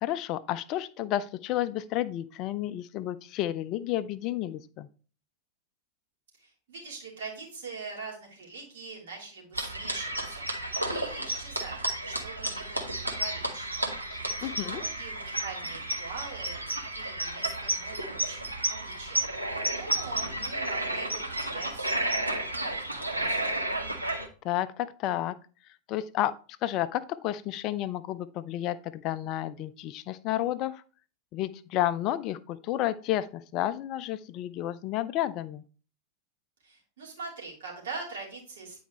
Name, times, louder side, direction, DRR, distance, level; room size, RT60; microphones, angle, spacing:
voice 1, 0.0-4.9 14.1-14.8 24.4-25.4 25.9-26.3 26.6-30.8 31.3-35.6, left 13 dB, 40° left, 15 dB, 0.4 m, -31 dB
voice 2, 6.4-11.8 12.0-22.1 22.3-23.6 36.6-38.8, right 4 dB, 60° right, -2 dB, 3.0 m, -43 dB
sound 1, 9.5-24.3, right 1 dB, 85° right, 1.0 m, -32 dB
9.2 x 4.6 x 3.1 m, 0.38 s
figure-of-eight pair, 90°, 0 cm